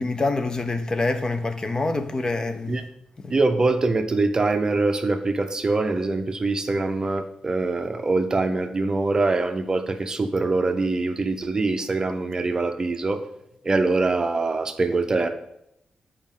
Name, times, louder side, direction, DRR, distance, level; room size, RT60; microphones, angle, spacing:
voice 1, 0.0-2.8 3.2-3.3, left 3 dB, 25° left, 0.5 m, -26 dB
voice 2, 3.3-13.2 13.6-15.3, right 3 dB, 30° right, 0.6 m, -23 dB
9.4 x 4.9 x 3.7 m
wide cardioid pair, 145°, 3 cm